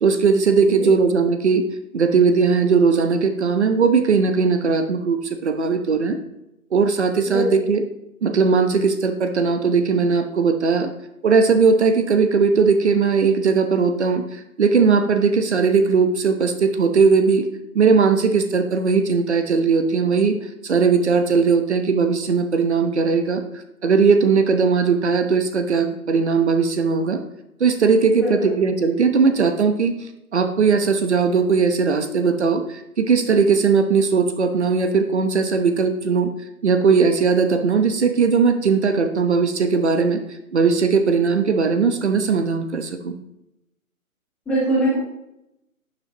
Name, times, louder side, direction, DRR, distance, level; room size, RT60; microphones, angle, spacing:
voice 1, 0.0-1.7 1.9-6.2 6.7-7.8 8.2-10.9 11.2-17.5 17.7-20.4 20.6-23.4 23.8-27.2 27.6-30.0 30.3-36.3 36.6-40.2 40.5-43.1, right 5 dB, 50° right, 7 dB, 1.0 m, -18 dB
voice 2, 28.2-28.5 44.5-45.0, right 1 dB, 5° left, -8 dB, 0.9 m, -22 dB
11.5 x 7.4 x 2.9 m, 0.86 s
hypercardioid pair, 155°, 44 cm